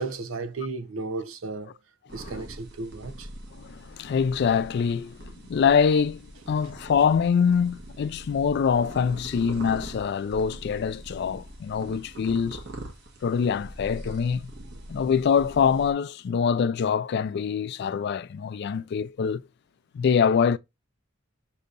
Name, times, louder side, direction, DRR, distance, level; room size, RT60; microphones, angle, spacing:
voice 1, 0.0-1.7 2.1-3.3 18.7-18.8, right 3 dB, 85° right, 0.8 m, -34 dB
sound 1, 2.1-15.9, right 1 dB, 55° right, 1.4 m, -43 dB
voice 2, 3.6-6.2 6.5-12.6 13.2-14.5 14.9-19.5 19.9-20.6, left 6 dB, 55° left, 0.3 m, -24 dB
6.5 x 2.8 x 2.5 m
head